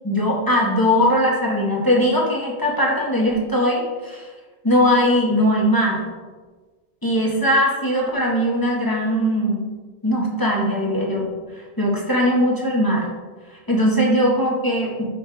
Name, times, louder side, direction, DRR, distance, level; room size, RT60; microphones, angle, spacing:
voice 1, 0.0-4.3 4.6-6.0 7.0-9.7 10.0-11.3 11.5-13.1 13.7-15.0, equal, 20° left, -4 dB, 1.9 m, -20 dB
11.5 x 5.9 x 3.5 m, 1.4 s
omnidirectional pair, 1.0 m